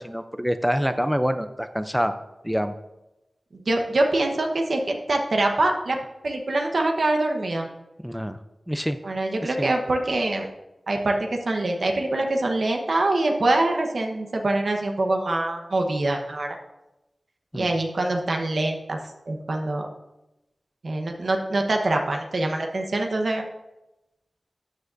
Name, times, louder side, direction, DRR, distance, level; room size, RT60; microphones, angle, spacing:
voice 1, 0.0-2.1 2.4-2.8 8.0-8.4 8.7-9.0 9.4-9.7 17.5-17.7, equal, 5° right, 9 dB, 0.5 m, -26 dB
voice 2, 3.5-6.0 6.2-7.7 9.0-10.5 10.9-11.2 11.4-16.6 17.5-19.0 19.3-19.9 20.8-23.4, right 2 dB, 75° right, 2 dB, 1.0 m, -24 dB
12.5 x 7.3 x 2.6 m, 0.96 s
wide cardioid pair, 85°, 0 cm